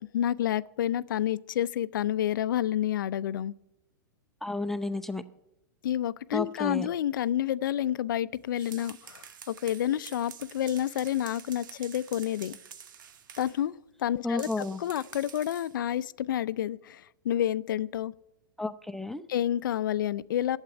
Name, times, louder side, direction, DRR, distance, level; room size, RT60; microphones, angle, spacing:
voice 1, 0.1-3.5 5.8-12.6 13.4-18.1 19.3-20.6, left 11 dB, 70° left, 19 dB, 0.5 m, -29 dB
voice 2, 4.4-5.2 6.3-6.9 14.2-14.8 18.6-19.2, left 2 dB, 5° left, 8 dB, 0.7 m, -32 dB
sound 1, 8.4-13.6 14.4-15.8, right 8 dB, 70° right, 1.2 m, -48 dB
11.5 x 8.2 x 9.8 m, 0.89 s
hypercardioid pair, 105°, 11 cm